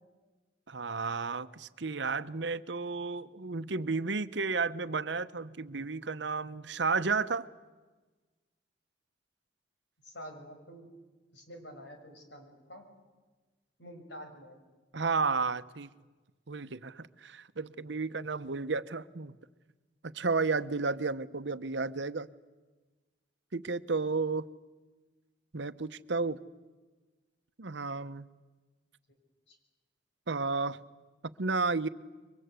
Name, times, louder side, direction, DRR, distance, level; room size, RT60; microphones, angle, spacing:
voice 1, 0.7-7.5 14.9-15.9 16.5-19.4 20.1-22.3 23.5-24.4 25.5-26.4 27.6-28.3 30.3-30.8 31.4-31.9, right 4 dB, 75° right, 13 dB, 0.9 m, -32 dB
voice 2, 10.0-10.9 11.3-12.8 13.8-14.6 29.5-29.6, equal, 75° left, 4 dB, 6.4 m, -48 dB
29.0 x 23.5 x 8.3 m, 1.3 s
head